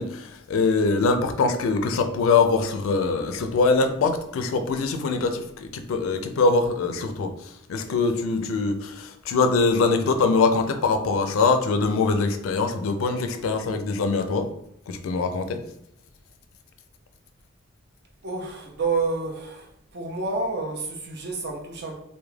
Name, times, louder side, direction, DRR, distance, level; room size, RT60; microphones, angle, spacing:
voice 1, 0.0-14.5 14.9-15.6, left 4 dB, 80° left, 0.3 m, -23 dB
voice 2, 18.2-19.7 19.9-22.0, right 3 dB, 50° right, 0.5 m, -29 dB
2.2 x 2.1 x 3.2 m
head